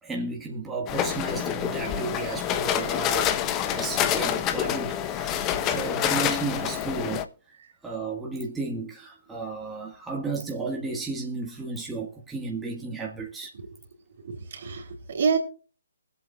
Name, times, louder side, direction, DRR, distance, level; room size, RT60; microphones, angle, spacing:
voice 1, 0.0-3.3 3.7-7.2 7.8-13.5, right 3 dB, 10° right, 1.7 m, -33 dB
sound 1, 0.9-7.2, left 10 dB, 20° left, 0.9 m, -27 dB
voice 2, 14.2-15.4, right 6 dB, 50° right, 3.2 m, -28 dB
23.5 x 8.2 x 2.4 m
figure-of-eight pair, 135°, 0 cm